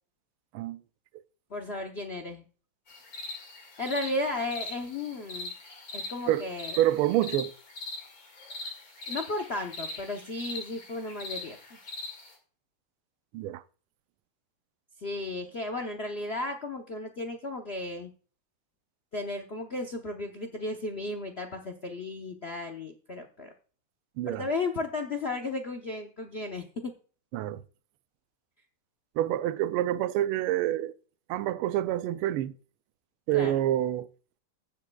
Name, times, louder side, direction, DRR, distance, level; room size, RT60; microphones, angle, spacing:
voice 1, 1.5-2.5 3.8-5.5 5.9-6.8 9.1-11.6 15.0-18.1 19.1-23.5 24.3-26.9 33.3-33.5, left 2 dB, 75° left, 0.5 m, -34 dB
sound 1, 2.9-12.3, left 2 dB, 40° left, 2.5 m, -41 dB
voice 2, 6.8-7.5 13.3-13.6 24.2-24.5 27.3-27.6 29.2-30.9 31.3-32.5 33.3-34.1, right 13 dB, 85° right, 1.5 m, -27 dB
15.5 x 7.5 x 2.3 m
omnidirectional pair, 2.4 m